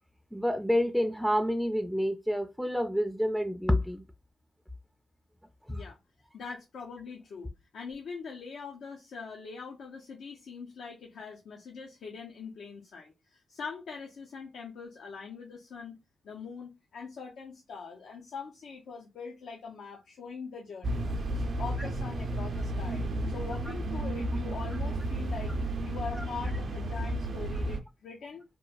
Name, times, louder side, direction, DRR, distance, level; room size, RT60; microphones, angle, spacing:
voice 1, 0.3-4.0 5.7-5.8 21.8-21.9 24.7-24.8 26.2-26.3, equal, ahead, 0.4 m, -28 dB
voice 2, 6.3-16.0 16.2-21.1 21.3-25.5 25.8-28.4, left 5 dB, 80° left, 0.5 m, -42 dB
sound 1, 20.8-27.8, right 1 dB, 65° right, 0.5 m, -32 dB
2.9 x 2.1 x 2.3 m
cardioid pair, 55°, 0 cm